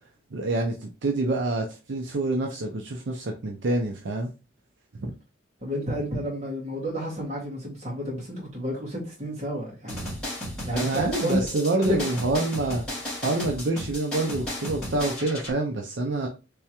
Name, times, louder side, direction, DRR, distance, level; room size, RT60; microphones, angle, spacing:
voice 1, 0.3-4.3 5.0-5.1 10.7-12.8 13.2-16.3, right 2 dB, 65° right, 0.5 m, -27 dB
voice 2, 5.6-10.1 10.7-11.5 11.7-12.0, equal, 35° right, 1.8 m, -30 dB
sound 1, 9.9-15.5, left 1 dB, 5° left, 1.8 m, -34 dB
3.4 x 3.3 x 2.9 m
head